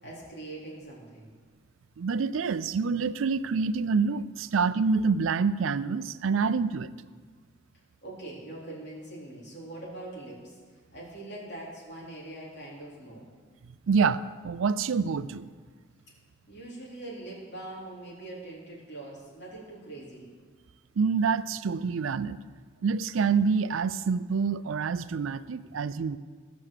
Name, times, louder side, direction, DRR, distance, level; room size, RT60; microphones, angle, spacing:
voice 1, 0.0-1.3 8.0-10.6 10.9-13.3 16.5-20.3, right 2 dB, 55° left, -5 dB, 3.8 m, -42 dB
voice 2, 2.0-6.9 13.9-15.5 21.0-22.4 22.8-26.2, right 5 dB, 85° right, 15 dB, 0.4 m, -27 dB
14.5 x 6.0 x 6.6 m, 1.5 s
head